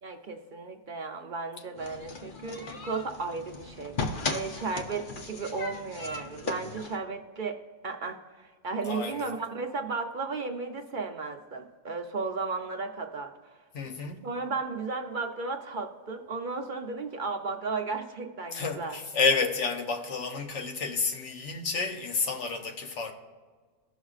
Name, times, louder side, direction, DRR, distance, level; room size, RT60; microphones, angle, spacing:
voice 1, 0.0-7.6 7.8-13.3 14.2-19.0, right 4 dB, 50° right, 0.7 m, -34 dB
sound 1, 1.8-7.0, left 3 dB, 50° left, 0.9 m, -37 dB
voice 2, 8.9-9.3 13.7-14.2 18.5-23.1, left 4 dB, 80° left, 1.2 m, -30 dB
17.0 x 6.2 x 2.4 m
omnidirectional pair, 1.2 m